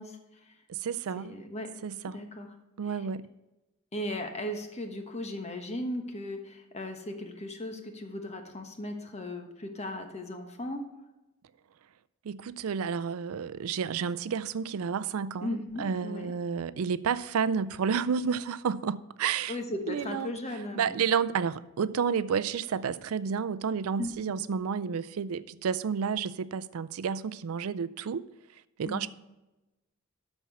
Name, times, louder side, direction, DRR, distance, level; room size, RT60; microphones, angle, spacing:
voice 1, 0.0-0.6 1.2-1.7 2.1-2.5 2.9-3.1 3.9-10.8 15.4-16.3 19.5-21.0 24.0-24.3 28.8-29.1, left 1 dB, 30° left, 1.2 m, -37 dB
voice 2, 0.7-1.4 1.8-2.2 2.8-3.3 12.2-19.6 19.9-20.3 20.7-28.2 28.8-29.1, right 6 dB, 85° right, 0.4 m, -31 dB
12.5 x 4.5 x 5.9 m
head